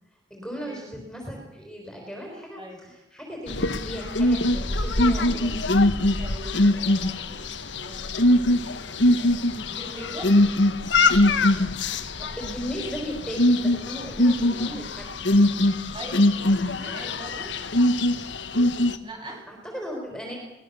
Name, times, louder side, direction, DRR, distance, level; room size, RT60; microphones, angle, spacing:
voice 1, 0.3-5.6 6.7-7.0 12.0-15.3 19.3-20.4, equal, 5° left, 0 dB, 4.6 m, -37 dB
sound 1, 3.5-19.0, left 1 dB, 70° left, 1.5 m, -22 dB
voice 2, 6.2-8.2 9.7-10.4 15.9-17.5 19.0-19.5, right 1 dB, 25° right, 1 dB, 7.6 m, -41 dB
22.5 x 20.0 x 7.0 m, 0.95 s
head